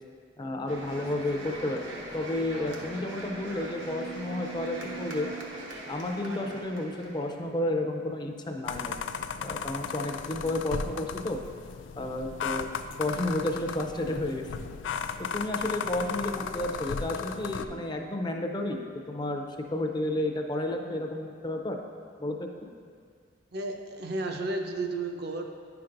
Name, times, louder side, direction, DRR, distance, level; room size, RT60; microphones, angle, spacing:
voice 1, 0.4-1.8 2.1-5.3 5.9-8.9 9.4-11.4 12.0-12.7 13.0-14.5 15.2-18.8 19.1-19.4 19.7-21.8 22.2-22.5, left 1 dB, 25° left, 3 dB, 0.5 m, -31 dB
sound 1, 0.7-7.4, right 2 dB, 75° right, 1.0 m, -40 dB
sound 2, 8.7-17.7, left 6 dB, 85° left, 0.3 m, -35 dB
voice 2, 23.5-25.4, right 2 dB, 60° right, 3 dB, 0.6 m, -32 dB
10.0 x 5.8 x 2.6 m, 2.1 s
head